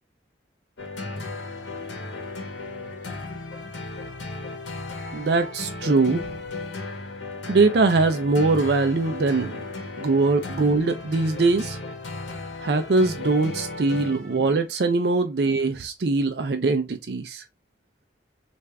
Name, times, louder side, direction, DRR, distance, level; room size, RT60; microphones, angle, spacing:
sound 1, 0.8-14.5, left 3 dB, 90° left, 0.9 m, -35 dB
voice 1, 5.1-6.3 7.5-9.6 10.0-11.8 12.6-17.4, right 3 dB, 65° right, 0.5 m, -22 dB
3.4 x 2.5 x 3.3 m
head